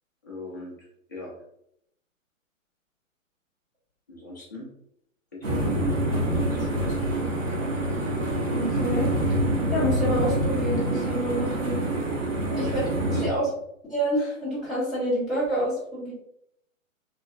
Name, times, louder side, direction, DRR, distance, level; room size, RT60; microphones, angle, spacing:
voice 1, 0.2-1.3 4.1-4.7 5.3-7.0 12.4-12.6 13.0-13.5, left 2 dB, 15° left, -5 dB, 0.4 m, -40 dB
sound 1, 5.4-13.3, right 1 dB, 65° right, 1.2 m, -26 dB
voice 2, 8.5-9.1 9.7-11.8 12.6-12.8 13.1-13.5 13.9-16.1, equal, ahead, -12 dB, 0.8 m, -27 dB
3.0 x 2.7 x 2.2 m, 0.74 s
figure-of-eight pair, 120°, 40 cm